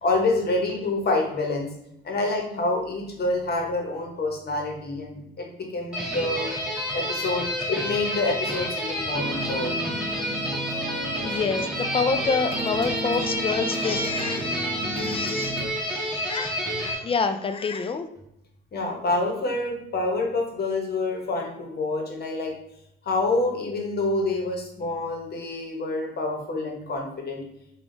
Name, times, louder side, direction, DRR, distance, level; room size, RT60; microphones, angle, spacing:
voice 1, 0.0-1.7 2.0-6.5 6.9-9.8 18.7-22.5 23.0-27.4, left 2 dB, 50° left, 1 dB, 1.1 m, -27 dB
sound 1, 5.9-16.9, equal, 5° right, 1.4 m, -29 dB
sound 2, 9.1-15.7, right 2 dB, 30° right, 0.5 m, -34 dB
voice 2, 11.2-18.1, left 5 dB, 30° left, 9 dB, 0.4 m, -28 dB
3.4 x 2.4 x 3.8 m, 0.78 s
cardioid pair, 90°, 20 cm